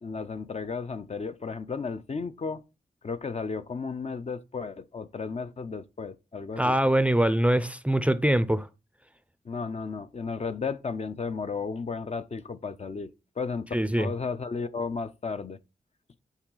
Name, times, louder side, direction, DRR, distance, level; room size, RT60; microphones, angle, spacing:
voice 1, 0.0-2.6 3.0-6.8 9.4-13.7 14.0-15.6, left 5 dB, 45° left, 0.5 m, -34 dB
voice 2, 6.6-8.7 13.7-14.1, right 1 dB, 10° right, 0.4 m, -23 dB
7.2 x 4.0 x 3.8 m
wide cardioid pair, 75°, 16 cm